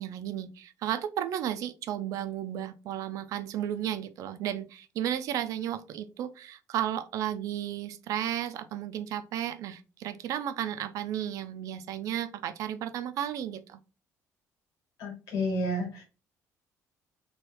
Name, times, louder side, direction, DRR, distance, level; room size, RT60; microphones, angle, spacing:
voice 1, 0.0-13.8, right 10 dB, 70° right, 0.4 m, -33 dB
voice 2, 15.0-16.0, equal, 80° left, 1.4 m, -30 dB
3.0 x 2.3 x 3.3 m
cardioid pair, 120°, 6 cm